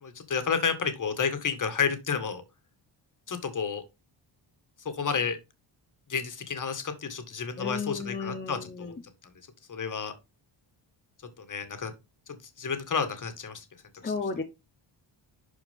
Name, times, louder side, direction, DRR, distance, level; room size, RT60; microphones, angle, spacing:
voice 1, 0.0-2.4 3.3-3.8 4.9-5.4 6.1-8.9 9.7-10.1 11.4-11.9 12.3-13.7 14.0-14.1, left 6 dB, 40° left, 8 dB, 1.8 m, -31 dB
voice 2, 7.6-9.0 14.0-14.4, left 4 dB, 20° left, 3 dB, 0.8 m, -33 dB
11.0 x 4.5 x 3.6 m, 0.24 s
wide cardioid pair, 155°, 48 cm